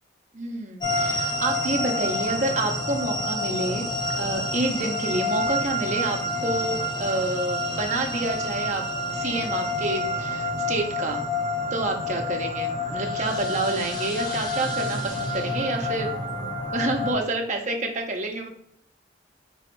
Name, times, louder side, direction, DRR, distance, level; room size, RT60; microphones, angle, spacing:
voice 1, 0.3-3.9 4.2-8.8 9.1-11.2 11.7-16.1 16.7-18.5, right 2 dB, 35° right, 3 dB, 0.6 m, -28 dB
sound 1, 0.8-17.1, left 1 dB, 20° left, 0.6 m, -28 dB
3.5 x 3.1 x 4.4 m, 0.69 s
head